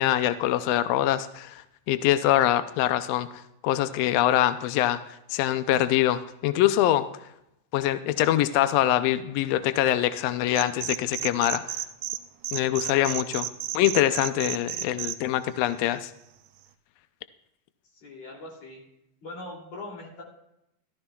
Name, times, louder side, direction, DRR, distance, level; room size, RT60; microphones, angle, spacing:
voice 1, 0.0-5.0 5.3-7.1 7.7-11.8 12.5-13.5 13.7-16.1, left 13 dB, 85° left, 12 dB, 1.5 m, -24 dB
sound 1, 10.5-12.2 12.4-15.2, right 13 dB, 80° right, 1.4 m, -31 dB
voice 2, 17.9-18.8 19.2-20.2, left 2 dB, 55° left, -1 dB, 3.8 m, -41 dB
15.5 x 13.0 x 2.3 m, 0.83 s
omnidirectional pair, 3.6 m